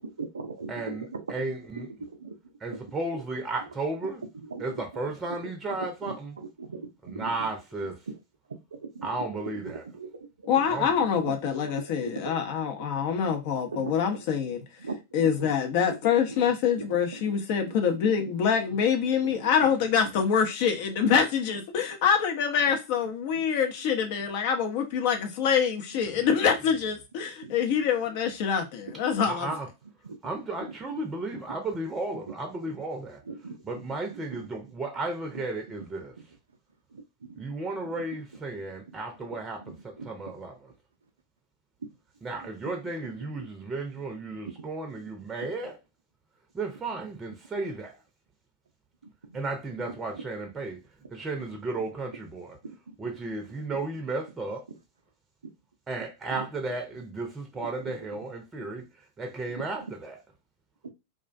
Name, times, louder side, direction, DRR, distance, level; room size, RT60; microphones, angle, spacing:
voice 1, 0.0-1.2 1.8-1.9 2.2-2.3 2.7-2.8 3.1-3.2 4.5-4.6 5.8-7.3 7.8-8.1 8.7-9.1 9.6-10.1 10.5-10.6 11.2-11.3 11.8-12.4 13.7-13.9 14.8-15.0 15.4-15.5 15.9-16.0 16.8-17.0 17.3-17.4 18.2-18.3 18.7-18.8 19.2-19.3 21.1-21.2 27.4-27.8 30.0-30.2 32.6-32.7 33.3-33.5 34.1-34.2 36.9-37.0 37.3-37.4 39.7-40.1 44.5-44.6 49.3-49.4 52.6-53.0 55.4-55.5 57.8-57.9 58.6-58.7 59.5-59.7, right 4 dB, 80° right, 0.4 m, -39 dB
voice 2, 0.7-1.9 2.6-4.2 4.6-6.4 7.0-8.0 9.0-9.8 10.7-10.9 29.2-29.7 30.2-33.2 33.6-36.1 37.4-40.7 42.2-45.8 46.5-48.0 49.3-50.8 51.1-52.6 53.0-54.6 55.9-58.8 59.2-60.2, right 2 dB, 20° right, 0.6 m, -34 dB
voice 3, 10.5-14.6 15.1-29.5, left 7 dB, 50° left, 0.6 m, -25 dB
2.4 x 2.1 x 2.5 m
figure-of-eight pair, 95°, 0 cm